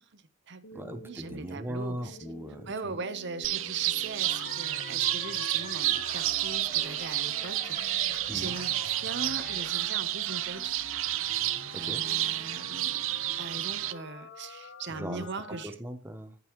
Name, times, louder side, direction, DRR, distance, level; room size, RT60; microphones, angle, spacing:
voice 1, 0.1-2.2 2.7-8.7 9.0-10.7 11.7-13.0 13.4-15.7, right 4 dB, 60° right, 13 dB, 0.8 m, -40 dB
sound 1, 0.6-15.6, left 3 dB, 85° left, 0.9 m, -48 dB
voice 2, 0.7-3.0 8.3-8.6 11.5-12.0 14.9-16.4, right 1 dB, 10° right, 9 dB, 0.8 m, -39 dB
sound 2, 3.4-13.9, right 15 dB, 90° right, 0.5 m, -30 dB
Cheering, 4.2-9.7, left 2 dB, 40° left, 4.1 m, -44 dB
15.5 x 5.4 x 3.0 m, 0.41 s
head